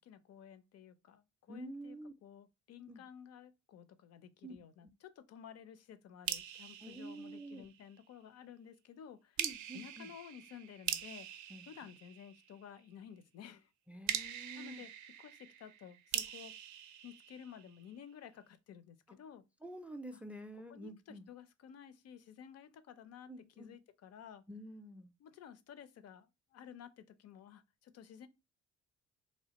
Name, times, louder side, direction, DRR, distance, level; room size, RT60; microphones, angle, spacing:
voice 1, 0.0-9.4 9.7-11.4 11.7-13.7 14.6-14.9 15.2-16.5 17.0-19.4 20.1-20.2 20.7-23.3 23.6-24.4 25.2-28.3, left 8 dB, 55° left, 0.5 m, -53 dB
voice 2, 1.5-2.1 2.9-3.0 4.4-4.6 6.8-7.7 9.4-10.1 11.5-11.7 13.9-14.8 19.6-21.2 23.3-23.8 24.5-25.1, right 1 dB, 5° right, 0.3 m, -48 dB
sound 1, 6.3-8.0 9.4-12.7 14.1-18.0, right 10 dB, 75° right, 0.5 m, -43 dB
3.2 x 2.3 x 2.8 m
cardioid pair, 90°, 30 cm